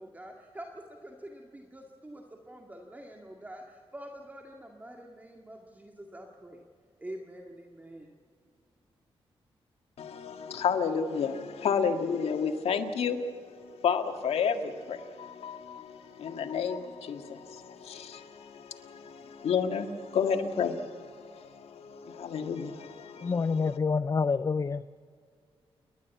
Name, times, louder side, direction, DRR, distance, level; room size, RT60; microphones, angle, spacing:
voice 1, 0.0-6.6 7.0-8.1, right 1 dB, 15° right, 1 dB, 2.1 m, -46 dB
voice 2, 10.0-23.8, left 6 dB, 85° left, 6 dB, 1.8 m, -31 dB
voice 3, 23.2-24.8, left 5 dB, 35° left, 14 dB, 0.5 m, -27 dB
29.0 x 12.0 x 8.3 m, 2.1 s
cardioid pair, 95°, 10 cm